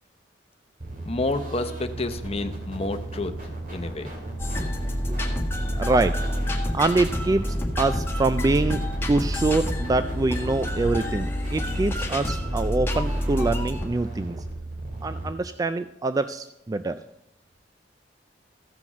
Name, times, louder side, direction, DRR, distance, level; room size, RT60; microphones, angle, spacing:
sound 1, 0.8-15.3, right 2 dB, 50° right, 2.7 m, -36 dB
voice 1, 1.1-3.3 3.7-4.1, left 2 dB, 35° left, 8 dB, 0.7 m, -29 dB
sound 2, 4.4-13.9, left 1 dB, 15° left, 1.5 m, -28 dB
voice 2, 5.8-6.2 6.7-8.8 9.1-14.4 15.0-17.0, right 3 dB, 20° right, 11 dB, 0.3 m, -25 dB
14.5 x 5.9 x 6.1 m, 0.82 s
head